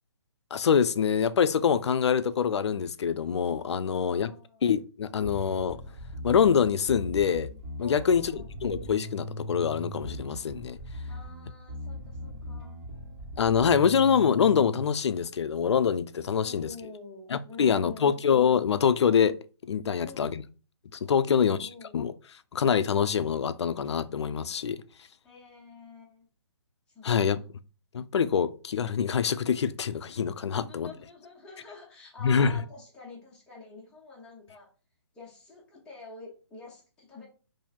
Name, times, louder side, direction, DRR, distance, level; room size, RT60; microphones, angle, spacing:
voice 1, 0.5-4.3 4.6-5.8 6.2-7.5 7.8-10.8 13.4-16.7 17.3-19.4 19.6-20.4 20.9-22.1 22.5-24.8 27.0-27.4 27.9-30.9 32.2-32.6, left 7 dB, 75° left, 0.4 m, -25 dB
voice 2, 3.8-4.6 7.8-8.5 11.1-12.8 16.3-18.1 19.9-20.4 21.1-22.0 25.2-26.3 26.9-27.6 30.5-34.7 35.1-37.3, left 3 dB, 5° left, 0.9 m, -47 dB
Bass guitar, 5.2-14.8, equal, 35° right, 1.7 m, -39 dB
2.9 x 2.7 x 4.0 m
hypercardioid pair, 160°, 14 cm